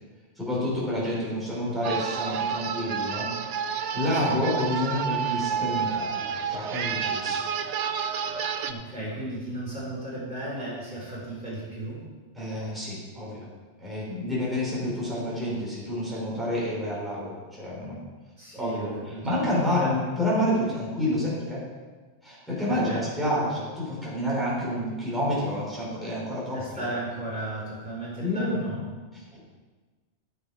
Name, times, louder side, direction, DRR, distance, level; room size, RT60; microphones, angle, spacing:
voice 1, 0.4-3.3 3.6-6.2 6.5-7.5 12.4-13.5 13.8-18.0 18.5-21.6 22.2-26.8 28.2-28.7 29.3-29.4, left 1 dB, ahead, -8 dB, 4.5 m, -29 dB
sound 1, 1.8-8.7, right 7 dB, 80° right, 1.0 m, -30 dB
voice 2, 4.1-4.4 8.7-12.0 18.4-19.4 22.7-23.0 26.5-28.8, right 1 dB, 45° right, -8 dB, 4.9 m, -35 dB
15.0 x 7.2 x 5.0 m, 1.4 s
omnidirectional pair, 1.2 m